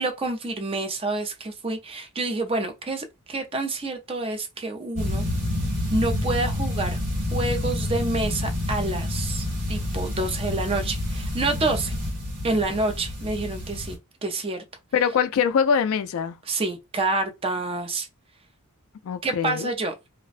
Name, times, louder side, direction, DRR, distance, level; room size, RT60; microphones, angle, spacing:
voice 1, 0.0-5.2 5.9-7.0 7.3-11.9 12.4-14.6 16.5-18.1 19.2-19.9, right 2 dB, 25° right, 0.4 m, -28 dB
sound 1, 5.0-14.0, left 1 dB, 80° right, 1.6 m, -28 dB
voice 2, 14.9-16.4 19.0-19.7, left 7 dB, 65° left, 0.3 m, -23 dB
2.4 x 2.1 x 2.4 m
head